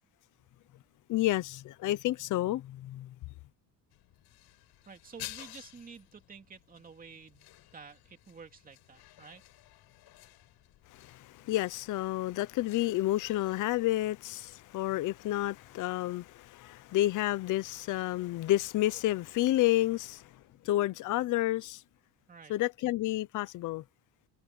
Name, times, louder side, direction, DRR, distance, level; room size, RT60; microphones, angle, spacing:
voice 1, 1.1-3.1 10.9-20.3 20.6-21.8 22.5-23.8, left 15 dB, 50° left, 0.7 m, -30 dB
sound 1, 3.9-20.6, left 16 dB, 70° left, 6.7 m, -54 dB
voice 2, 4.9-9.4 22.3-22.6, right 5 dB, 20° right, 2.4 m, -51 dB
open air
cardioid pair, 175°, 40 cm